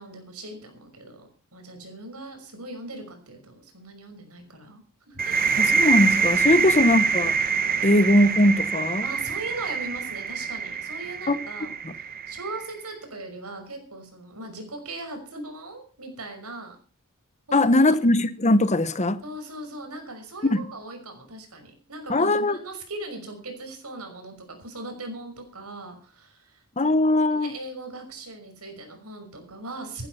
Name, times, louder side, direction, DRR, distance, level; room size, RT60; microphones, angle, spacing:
voice 1, 0.0-5.5 6.5-7.0 9.0-11.7 12.0-16.8 17.5-18.0 19.2-27.0 27.4-30.1, right 2 dB, 85° right, 6.0 m, -39 dB
sound 1, 5.2-12.7, right 5 dB, 40° right, 1.1 m, -25 dB
voice 2, 5.6-7.3 7.8-9.1 11.3-11.4 11.8-11.9 17.5-19.2 20.4-20.6 22.1-22.6 26.8-27.5, left 1 dB, 30° left, 1.1 m, -20 dB
16.0 x 11.0 x 5.8 m
head